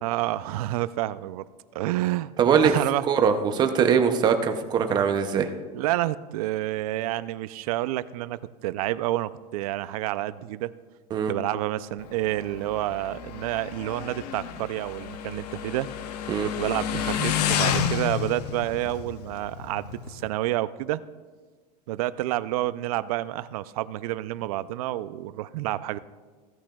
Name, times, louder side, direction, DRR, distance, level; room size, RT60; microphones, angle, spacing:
voice 1, 0.0-1.5 1.7-2.3 2.6-3.1 5.7-10.7 11.3-15.9 16.6-21.0 21.9-26.0, right 15 dB, 65° right, 16 dB, 0.5 m, -29 dB
voice 2, 2.4-2.7 3.1-5.5 11.1-11.3 16.3-16.5, right 7 dB, 20° right, 7 dB, 0.6 m, -21 dB
Motorcycle, 12.0-20.3, left 9 dB, 80° left, 0.8 m, -31 dB
16.0 x 8.7 x 2.3 m, 1.4 s
supercardioid pair, 165°, 20 cm